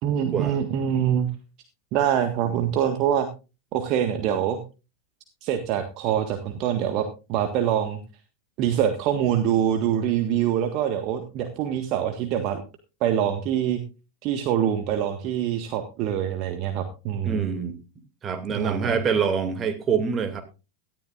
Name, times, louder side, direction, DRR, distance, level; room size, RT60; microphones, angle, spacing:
voice 1, 0.0-1.3 1.9-3.3 3.7-4.6 5.4-8.0 8.6-12.6 13.0-13.8 14.2-17.5 18.5-18.9, right 9 dB, 40° right, 6 dB, 1.7 m, -24 dB
voice 2, 17.2-17.8 18.2-20.4, right 6 dB, 25° right, 8 dB, 2.5 m, -26 dB
18.0 x 13.0 x 2.5 m, 0.31 s
figure-of-eight pair, 90°, 0 cm